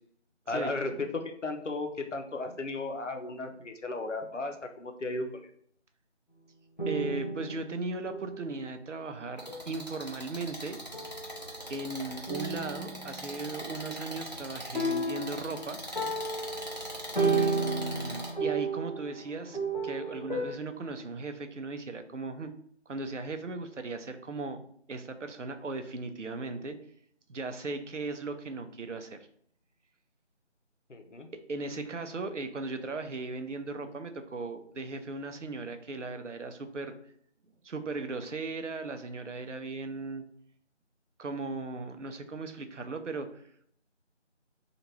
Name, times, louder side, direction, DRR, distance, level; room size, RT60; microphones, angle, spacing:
voice 1, 0.5-5.3 30.9-31.3, left 3 dB, 85° left, 5 dB, 0.7 m, -35 dB
sound 1, 6.8-8.6 9.5-9.8 10.9-11.7 12.3-13.5 14.8-20.5, right 3 dB, 40° left, 0.5 m, -33 dB
voice 2, 6.9-10.8 11.7-15.8 17.2-19.6 19.8-22.5 22.9-24.6 24.9-26.8 27.3-29.2 31.5-36.9 37.6-40.2 41.2-43.4, right 3 dB, 80° right, 8 dB, 0.6 m, -37 dB
sound 2, 9.4-18.3, equal, 35° right, 0.7 m, -41 dB
2.9 x 2.5 x 3.1 m, 0.65 s
figure-of-eight pair, 170°, 35 cm